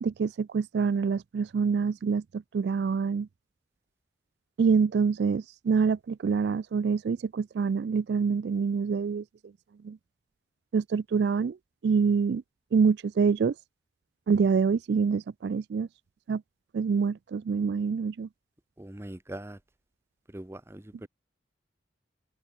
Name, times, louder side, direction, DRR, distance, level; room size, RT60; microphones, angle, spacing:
voice 1, 0.0-3.3 4.6-9.2 9.8-10.0 10.7-11.6 11.8-12.4 12.7-13.5 14.3-15.9 16.3-16.4 16.7-18.3, right 5 dB, 65° right, 0.3 m, -26 dB
voice 2, 18.8-19.6 20.3-21.1, right 1 dB, 15° right, 0.7 m, -41 dB
open air
head